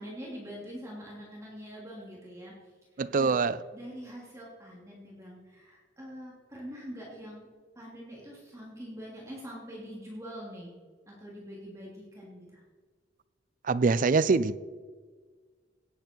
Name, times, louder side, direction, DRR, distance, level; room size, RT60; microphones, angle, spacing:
voice 1, 0.0-2.5 2.9-7.5 7.7-10.7 11.1-12.6, equal, 15° right, -5 dB, 2.9 m, -44 dB
voice 2, 3.0-3.5 13.7-14.6, right 4 dB, 45° right, 17 dB, 0.5 m, -24 dB
17.0 x 8.3 x 4.5 m, 1.5 s
head